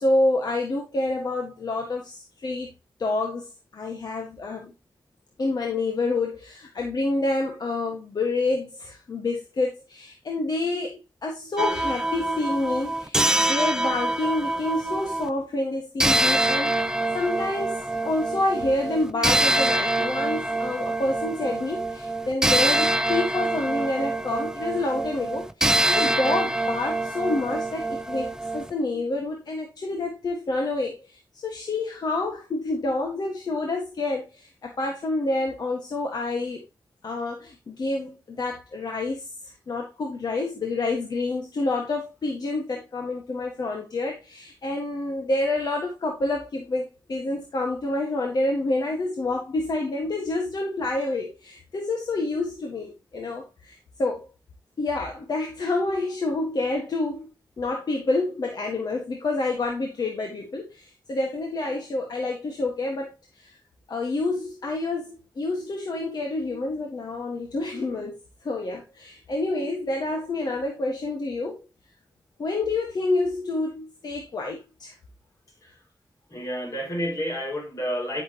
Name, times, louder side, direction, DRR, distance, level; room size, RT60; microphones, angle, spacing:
voice 1, 0.0-2.7 3.0-3.5 3.7-4.7 5.4-31.2 31.4-36.6 37.0-54.3 54.8-57.3 57.6-63.6 63.9-71.6 72.4-74.9, left 2 dB, 75° left, 1.7 m, -28 dB
sound 1, 11.6-15.3 16.0-28.7, right 1 dB, 10° right, 0.6 m, -25 dB
voice 2, 76.3-78.2, equal, 55° left, 5.4 m, -30 dB
11.0 x 6.5 x 3.0 m
wide cardioid pair, 125°, 7 cm